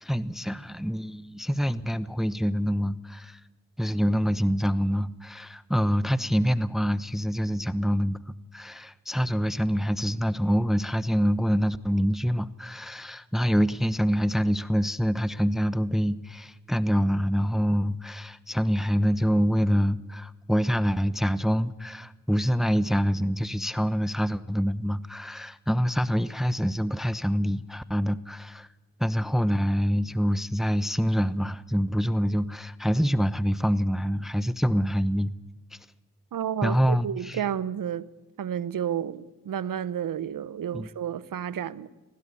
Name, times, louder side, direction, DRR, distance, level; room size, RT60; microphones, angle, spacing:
voice 1, 0.0-3.4 3.8-28.7 29.0-35.3 35.7-35.8 36.6-37.4 40.7-40.9, equal, ahead, 0.9 m, -26 dB
voice 2, 36.3-38.1 38.4-41.9, right 9 dB, 70° right, 1.0 m, -31 dB
20.0 x 17.0 x 8.5 m
supercardioid pair, 45°, 35 cm